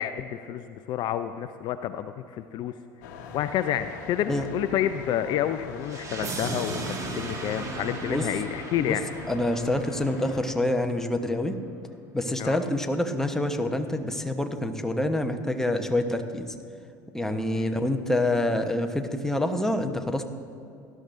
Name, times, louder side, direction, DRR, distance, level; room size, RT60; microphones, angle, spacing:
voice 1, 0.0-2.7 3.3-9.0 12.4-12.6 17.5-17.7, left 11 dB, 50° left, 11 dB, 0.4 m, -29 dB
sound 1, 3.0-10.4, left 6 dB, 65° left, 1.1 m, -42 dB
sound 2, 5.8-10.8, right 3 dB, 35° right, 1.8 m, -36 dB
voice 2, 9.3-11.5 12.1-16.5 17.1-20.2, left 1 dB, 5° left, 6 dB, 0.9 m, -27 dB
18.0 x 12.0 x 2.6 m, 2.6 s
hypercardioid pair, 75°, 10 cm